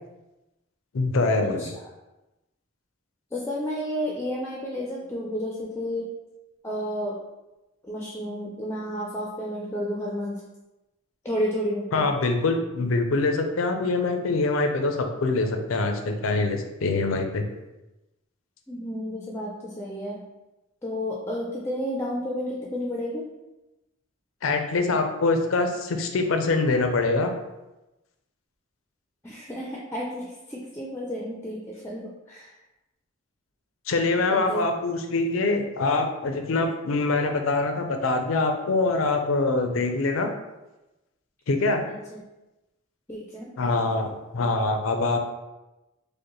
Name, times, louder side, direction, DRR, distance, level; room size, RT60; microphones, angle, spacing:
voice 1, 0.9-1.7 11.9-17.5 24.4-27.3 33.9-40.3 41.5-41.8 43.6-45.2, left 3 dB, 85° left, 5 dB, 0.5 m, -24 dB
voice 2, 3.3-6.1 6.6-7.2 7.8-10.4 11.2-12.1 18.7-20.2 20.8-23.2 29.2-32.5 34.3-34.7 41.9-42.2 43.1-43.5, equal, 15° left, -3 dB, 0.4 m, -31 dB
5.0 x 2.1 x 3.0 m, 1.0 s
head